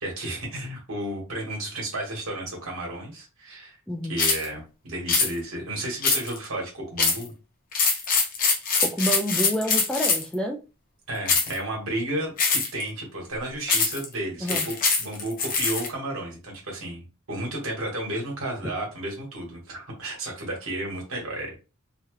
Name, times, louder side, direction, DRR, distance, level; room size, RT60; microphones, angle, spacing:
voice 1, 0.0-3.8 4.1-7.3 11.1-14.7 15.0-21.6, right 1 dB, 65° right, -1 dB, 1.5 m, -32 dB
voice 2, 3.9-4.2 8.8-10.6 14.4-14.7, right 1 dB, 5° left, 2 dB, 0.3 m, -28 dB
sound 1, 4.2-4.5 5.1-5.3 6.0-6.5 7.0-7.3 7.7-10.3 11.3-11.6 12.4-12.8 13.7-14.1 14.5-15.9, left 4 dB, 40° left, 0.8 m, -23 dB
2.9 x 2.3 x 3.1 m, 0.31 s
head